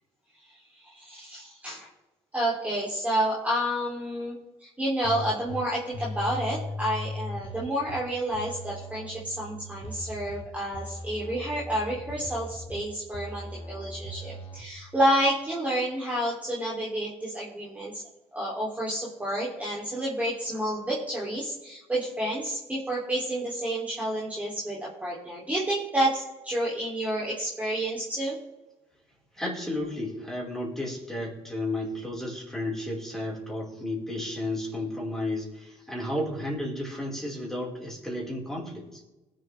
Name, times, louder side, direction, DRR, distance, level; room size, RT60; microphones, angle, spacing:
voice 1, 0.5-1.9 2.3-18.0 18.3-28.4, right 1 dB, 10° right, -5 dB, 3.3 m, -30 dB
sound 1, 5.0-5.6 5.9-8.0 8.3-10.4 10.7-12.8 13.1-14.6, left 1 dB, 55° left, 2.4 m, -38 dB
voice 2, 29.3-39.0, left 1 dB, 5° left, -3 dB, 5.1 m, -33 dB
21.0 x 7.7 x 3.5 m, 1.1 s
cardioid pair, 100°, 11 cm